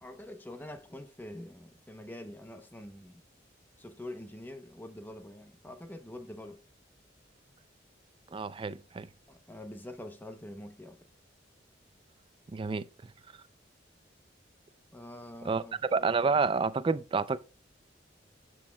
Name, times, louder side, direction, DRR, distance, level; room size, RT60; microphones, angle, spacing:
voice 1, 0.0-3.2 3.8-6.6 9.3-11.1 14.9-15.8 16.1-16.4, left 1 dB, 10° left, 0.6 m, -45 dB
voice 2, 8.3-9.1 12.5-12.8 15.4-15.6 15.9-17.4, right 4 dB, 30° right, 0.3 m, -29 dB
13.0 x 6.2 x 2.2 m
head